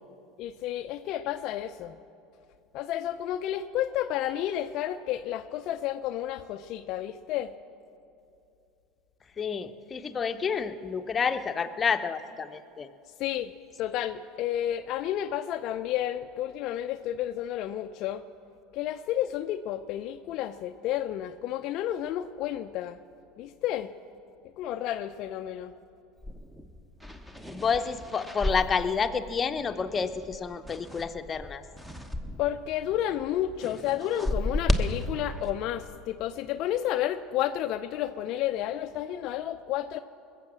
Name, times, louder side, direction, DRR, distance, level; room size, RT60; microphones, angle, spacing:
voice 1, 0.4-1.9 2.7-7.5 13.2-13.5 13.8-18.2 18.7-23.0 23.4-23.9 24.6-25.7 32.4-40.0, left 12 dB, 55° left, 7 dB, 0.5 m, -31 dB
voice 2, 9.4-12.9 27.5-31.6, left 6 dB, 30° left, 8 dB, 0.8 m, -29 dB
sound 1, 26.2-32.6 32.8-35.5, left 1 dB, 10° right, 1.2 m, -34 dB
20.5 x 7.6 x 7.4 m, 2.7 s
hypercardioid pair, 85°, 0 cm